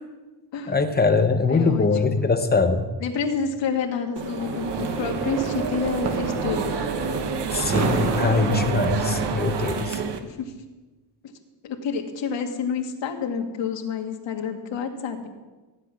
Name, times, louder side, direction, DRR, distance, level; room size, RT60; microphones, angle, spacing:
voice 1, 0.7-2.9 7.5-10.0, left 4 dB, 20° left, 7 dB, 0.9 m, -22 dB
voice 2, 1.5-2.2 3.0-6.8 10.4-10.5 11.2-11.3 11.6-15.3, left 6 dB, 80° left, 2 dB, 1.9 m, -29 dB
sound 1, 4.2-10.2, right 5 dB, 65° right, 1.3 m, -28 dB
sound 2, 4.4-9.4, right 4 dB, 35° right, 1.1 m, -31 dB
15.0 x 6.0 x 9.8 m, 1.2 s
wide cardioid pair, 155°, 44 cm